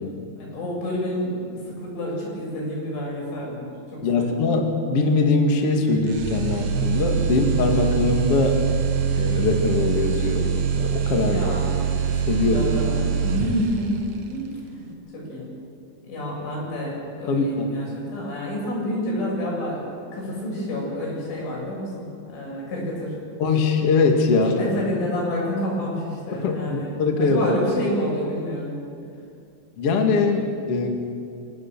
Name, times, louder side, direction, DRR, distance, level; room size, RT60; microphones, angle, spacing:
voice 1, 0.3-4.4 11.3-11.8 12.5-14.9 15.1-15.5 16.0-23.1 24.3-28.7, left 1 dB, 90° left, -3 dB, 9.5 m, -29 dB
voice 2, 4.0-8.6 9.1-11.4 12.3-12.7 17.3-17.7 23.4-24.5 26.3-27.5 29.8-30.9, left 3 dB, 45° left, 3 dB, 2.1 m, -22 dB
sound 1, 6.1-14.1, right 7 dB, 60° right, 1.8 m, -24 dB
26.0 x 17.5 x 7.4 m, 2.5 s
omnidirectional pair, 5.4 m